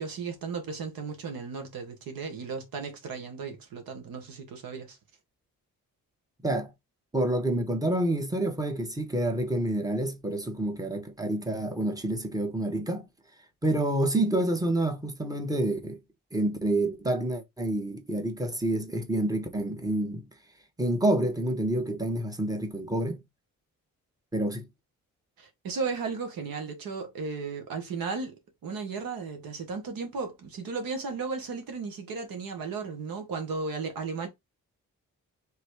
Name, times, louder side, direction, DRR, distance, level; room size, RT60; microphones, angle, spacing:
voice 1, 0.0-5.0 25.4-28.3 28.6-34.3, right 4 dB, 85° right, 1.5 m, -35 dB
voice 2, 7.1-13.1 13.6-16.0 16.3-20.3 20.8-23.2 24.3-24.7, right 1 dB, 10° right, 1.4 m, -28 dB
3.4 x 3.1 x 4.6 m
supercardioid pair, 55°, 34 cm